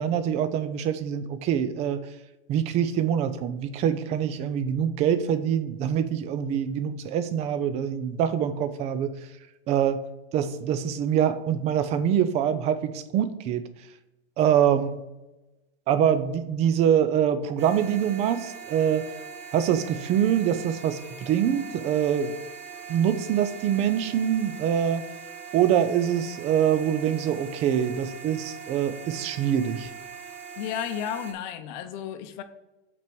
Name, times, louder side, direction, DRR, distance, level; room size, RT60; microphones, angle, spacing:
voice 1, 0.0-2.0 2.5-9.1 9.7-10.0 10.3-13.6 14.4-15.0 15.9-19.1 19.5-22.3 22.9-25.0 25.5-29.9, right 9 dB, 20° right, 12 dB, 0.4 m, -24 dB
sound 1, 17.6-31.3, right 7 dB, 40° right, 2.2 m, -42 dB
voice 2, 30.6-32.4, left 10 dB, 50° left, 9 dB, 0.7 m, -33 dB
5.9 x 4.5 x 6.1 m, 1.0 s
supercardioid pair, 150°, 30 cm